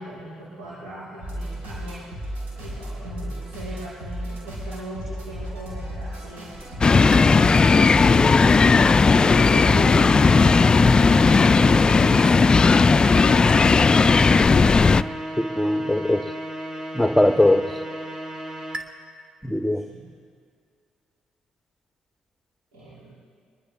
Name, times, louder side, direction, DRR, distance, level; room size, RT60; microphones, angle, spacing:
voice 1, 0.0-2.1 2.6-6.5 7.3-13.8 19.7-20.1 22.7-23.1, right 1 dB, 80° right, -10 dB, 5.0 m, -39 dB
sound 1, 1.2-12.0, right 1 dB, 65° right, 5.1 m, -34 dB
sound 2, 6.8-15.0, left 4 dB, 30° left, 0.4 m, -16 dB
sound 3, 7.1-18.8, right 1 dB, 30° right, 2.2 m, -36 dB
voice 2, 15.6-16.2 16.9-17.6 19.4-19.8, left 1 dB, 5° left, 8 dB, 1.0 m, -19 dB
25.0 x 22.0 x 2.5 m, 2.1 s
hypercardioid pair, 45°, 3 cm